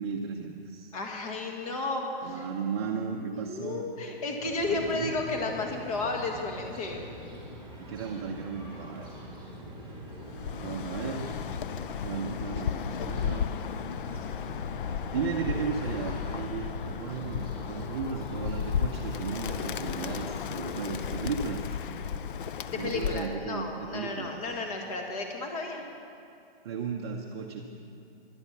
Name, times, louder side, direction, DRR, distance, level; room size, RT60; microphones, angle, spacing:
voice 1, 0.0-0.9 2.2-3.9 4.7-5.1 7.8-9.1 10.6-11.3 12.0-13.6 14.9-21.8 22.8-24.4 26.6-27.6, right 6 dB, 25° right, 1 dB, 0.6 m, -35 dB
voice 2, 0.9-2.4 3.2-7.0 22.7-25.8, left 3 dB, 35° left, 2 dB, 1.7 m, -33 dB
sound 1, 4.4-21.1, right 1 dB, 5° left, 2.9 m, -44 dB
Bird, 10.3-23.4, left 7 dB, 60° left, 0.5 m, -34 dB
14.5 x 11.5 x 5.9 m, 2.5 s
hypercardioid pair, 165°, 30 cm